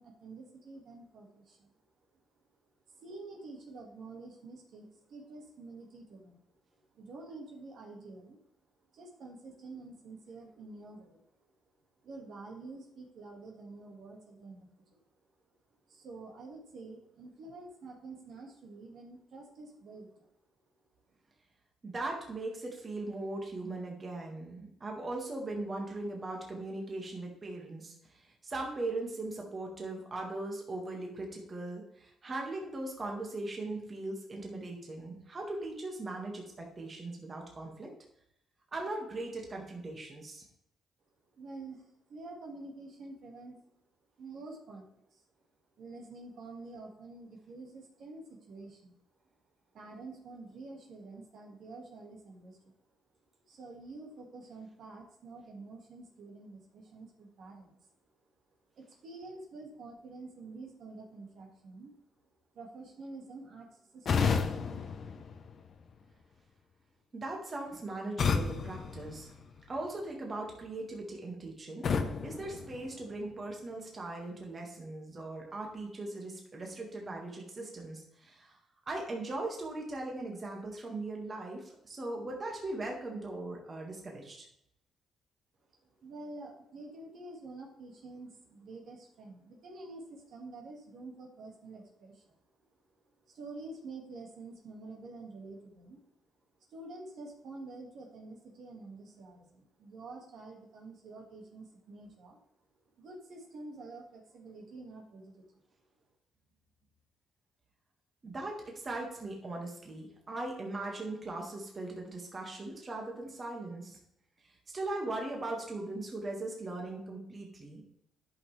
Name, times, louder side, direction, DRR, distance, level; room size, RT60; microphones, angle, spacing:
voice 1, 0.0-1.7 2.9-6.4 6.9-8.4 8.9-11.2 12.0-15.3 15.9-20.3 41.4-43.7 44.2-45.3 45.8-48.9 49.7-52.7 53.5-57.9 58.8-61.9 62.5-64.9 86.0-92.4 93.0-96.0 96.7-102.4 103.0-105.6, right 3 dB, 65° right, 0 dB, 2.0 m, -48 dB
voice 2, 21.8-37.9 38.7-40.4 67.1-69.3 69.7-71.9 72.2-78.6 78.9-84.5 108.2-114.0 114.7-117.8, right 2 dB, 35° right, 0 dB, 2.0 m, -39 dB
sound 1, 64.1-66.0 68.2-69.9 71.8-73.5, left 5 dB, 55° left, 0.8 m, -33 dB
10.5 x 5.7 x 3.4 m, 0.77 s
cardioid pair, 90°, 0 cm